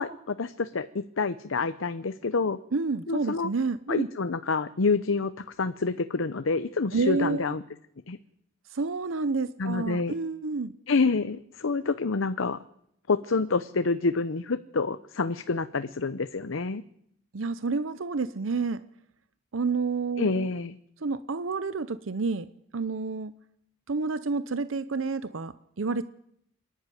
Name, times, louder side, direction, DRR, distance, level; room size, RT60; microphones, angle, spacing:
voice 1, 0.0-2.6 3.1-3.5 3.9-7.6 8.1-8.2 9.6-10.1 10.9-12.6 13.1-16.8 20.2-20.7, left 4 dB, 85° left, 12 dB, 0.7 m, -27 dB
voice 2, 2.7-4.1 6.9-7.5 8.7-10.7 17.3-18.8 19.5-20.5 21.0-22.5 22.7-23.3 23.9-26.0, right 4 dB, 80° right, 14 dB, 0.7 m, -29 dB
26.5 x 11.0 x 9.2 m, 0.73 s
head